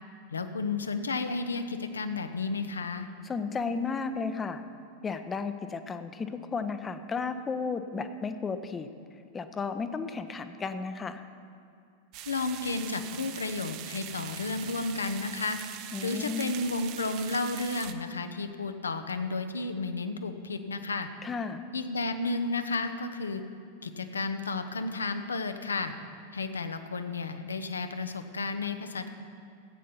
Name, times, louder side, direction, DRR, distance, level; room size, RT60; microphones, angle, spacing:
voice 1, 0.3-3.1 12.3-15.6 16.0-21.1 21.7-23.4 23.8-25.9 26.3-29.1, left 3 dB, 75° left, 9 dB, 0.8 m, -32 dB
voice 2, 3.2-4.6 5.0-8.9 9.3-11.2 15.9-16.6 21.2-21.6, left 5 dB, 20° left, 9 dB, 0.7 m, -33 dB
sound 1, 12.1-17.9, right 11 dB, 40° right, 0.6 m, -42 dB
14.5 x 8.7 x 5.4 m, 2.4 s
figure-of-eight pair, 90°, 0 cm